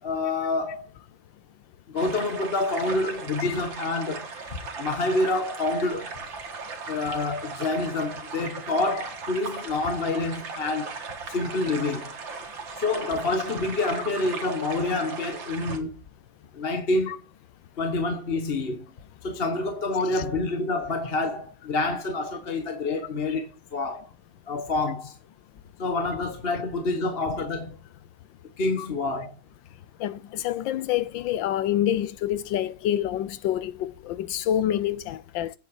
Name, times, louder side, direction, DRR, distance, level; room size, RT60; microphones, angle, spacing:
voice 1, 0.0-0.9 1.9-6.1 6.9-11.0 11.3-12.1 12.8-16.0 16.5-17.2 17.8-18.8 19.2-24.1 24.5-25.2 25.8-27.8 28.6-29.4, left 2 dB, 40° left, 1.1 m, -27 dB
sound 1, 2.0-15.8, right 4 dB, 85° right, 2.4 m, -37 dB
voice 2, 30.0-35.5, left 11 dB, 85° left, 1.5 m, -27 dB
9.1 x 7.6 x 4.7 m
omnidirectional pair, 2.0 m